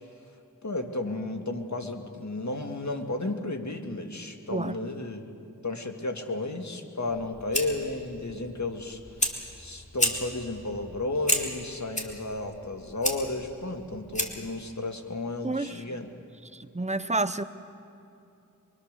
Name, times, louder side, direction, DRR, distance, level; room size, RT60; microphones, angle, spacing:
voice 1, 0.6-5.2 5.6-16.1, left 2 dB, 60° left, 4 dB, 2.1 m, -33 dB
Fire, 7.1-14.6, left 1 dB, 20° left, 2.7 m, -33 dB
voice 2, 15.4-15.8 16.5-17.4, right 2 dB, 20° right, 12 dB, 0.9 m, -29 dB
25.0 x 23.5 x 6.7 m, 2.6 s
wide cardioid pair, 45°, 32 cm